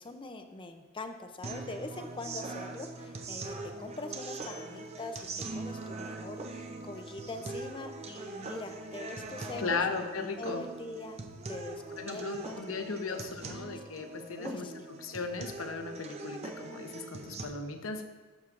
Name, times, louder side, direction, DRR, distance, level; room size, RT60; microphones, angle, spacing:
voice 1, 0.0-5.2 5.5-9.8 10.4-11.2 11.5-12.6 13.1-13.7 14.4-14.9, left 2 dB, 25° left, 7 dB, 0.5 m, -43 dB
sound 1, 1.4-17.4, right 2 dB, 30° right, 0.6 m, -42 dB
voice 2, 9.6-10.6 12.0-14.7 15.0-18.0, left 4 dB, 75° left, 6 dB, 0.8 m, -36 dB
12.5 x 6.0 x 2.5 m, 1.3 s
head